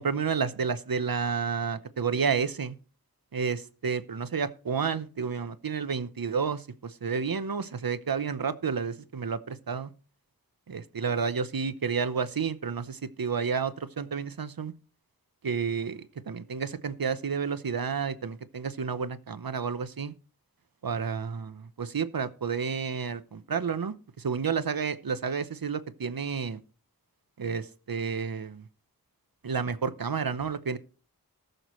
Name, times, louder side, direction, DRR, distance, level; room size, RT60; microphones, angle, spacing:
voice 1, 0.0-2.8 3.3-9.9 10.7-14.7 15.4-20.1 20.8-26.6 27.4-28.6 29.4-30.8, right 6 dB, 70° right, 13 dB, 0.8 m, -31 dB
19.0 x 6.6 x 3.1 m, 0.38 s
wide cardioid pair, 45°, 36 cm